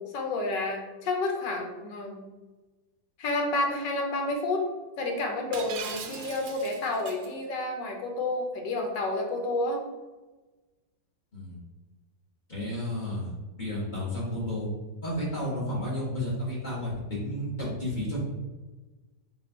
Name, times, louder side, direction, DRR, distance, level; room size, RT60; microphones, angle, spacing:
voice 1, 0.1-2.2 3.2-4.7 5.0-9.8, left 2 dB, 75° left, 2 dB, 1.3 m, -30 dB
Shatter, 5.5-7.3, right 6 dB, 85° right, 1.3 m, -39 dB
voice 2, 12.5-13.3 13.6-14.7 15.0-18.2, left 1 dB, 35° left, -7 dB, 0.9 m, -32 dB
4.1 x 2.3 x 4.3 m, 1.2 s
omnidirectional pair, 2.0 m